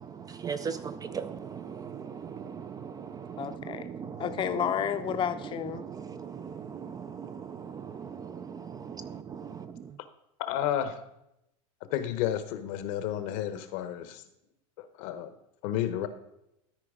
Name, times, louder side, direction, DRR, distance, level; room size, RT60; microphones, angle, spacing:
voice 1, 0.2-4.3 5.8-9.9, right 6 dB, 20° right, 11 dB, 0.3 m, -39 dB
voice 2, 3.4-3.9 4.2-5.9, left 9 dB, 25° left, 9 dB, 0.6 m, -31 dB
voice 3, 10.4-11.0 11.9-14.2 14.8-15.4 15.6-16.1, left 11 dB, 60° left, 11 dB, 0.9 m, -31 dB
13.5 x 4.7 x 3.7 m, 0.82 s
supercardioid pair, 115°, 19 cm